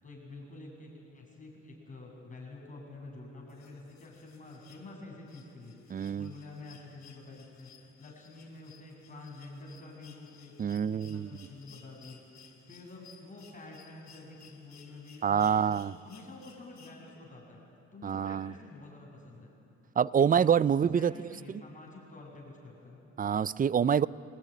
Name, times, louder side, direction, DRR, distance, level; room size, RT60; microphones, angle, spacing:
voice 1, 0.0-15.7 16.0-17.6 17.9-19.5 20.2-20.3 20.5-23.1, left 2 dB, 25° left, -1 dB, 7.9 m, -48 dB
sound 1, 3.5-17.4 18.8-18.9, left 6 dB, 60° left, 3.0 m, -59 dB
voice 2, 5.9-6.3 10.6-11.4 15.2-15.9 18.0-18.5 20.0-21.1 23.2-24.1, right 8 dB, 30° right, 19 dB, 0.4 m, -26 dB
22.5 x 18.5 x 9.8 m, 2.7 s
cardioid pair, 90°, 30 cm